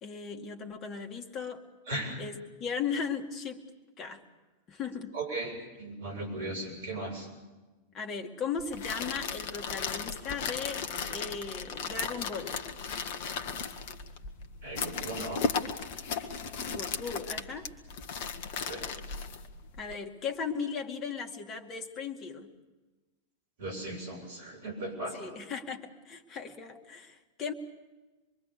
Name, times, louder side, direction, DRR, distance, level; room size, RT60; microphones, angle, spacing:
voice 1, 0.0-1.6 2.2-3.7 4.0-4.2 4.7-5.2 7.9-12.6 16.7-17.7 19.8-22.5 25.1-27.5, left 5 dB, 30° left, 4 dB, 2.2 m, -37 dB
voice 2, 1.9-2.2 5.1-7.3 14.6-15.4 18.6-18.8 23.6-25.3, right 2 dB, 60° right, 3 dB, 7.6 m, -37 dB
sound 1, 8.6-19.9, left 5 dB, 50° left, 1.4 m, -36 dB
26.0 x 22.5 x 6.9 m, 1.2 s
figure-of-eight pair, 90°, 0 cm